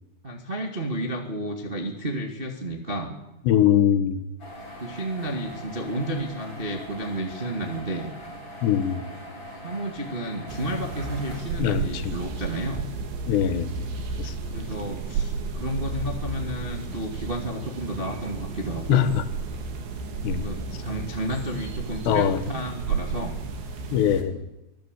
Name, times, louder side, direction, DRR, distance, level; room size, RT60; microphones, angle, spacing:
voice 1, 0.2-3.1 4.7-8.1 9.6-12.9 14.5-19.1 20.4-23.4, right 1 dB, 30° right, 2 dB, 1.0 m, -31 dB
voice 2, 3.4-4.2 8.6-9.1 11.6-12.2 13.3-13.7 14.2-14.4 18.9-19.2 20.2-20.8 22.1-22.4 23.9-24.5, left 10 dB, 80° left, 11 dB, 3.4 m, -22 dB
sound 1, 4.4-11.4, equal, 25° left, 6.5 m, -41 dB
sound 2, 10.5-24.2, right 4 dB, 85° right, 4.8 m, -33 dB
24.5 x 15.0 x 8.2 m, 0.94 s
omnidirectional pair, 5.0 m